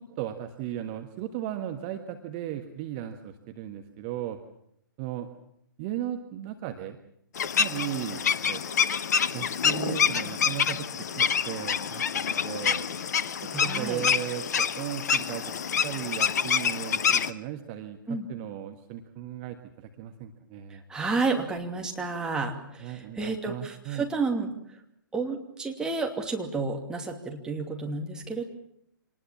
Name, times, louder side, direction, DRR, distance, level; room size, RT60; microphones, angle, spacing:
voice 1, 0.0-4.4 5.0-5.3 5.8-7.0 7.6-8.2 8.5-8.6 9.3-12.8 13.6-20.8 22.8-24.1, right 11 dB, 30° right, 6 dB, 1.5 m, -36 dB
sound 1, 7.3-17.3, left 7 dB, 50° left, 1.0 m, -27 dB
voice 2, 13.5-14.0 18.1-18.3 20.9-24.5 25.1-28.5, right 3 dB, 5° right, 1 dB, 2.7 m, -31 dB
25.5 x 20.0 x 7.3 m, 0.73 s
figure-of-eight pair, 120°, 11 cm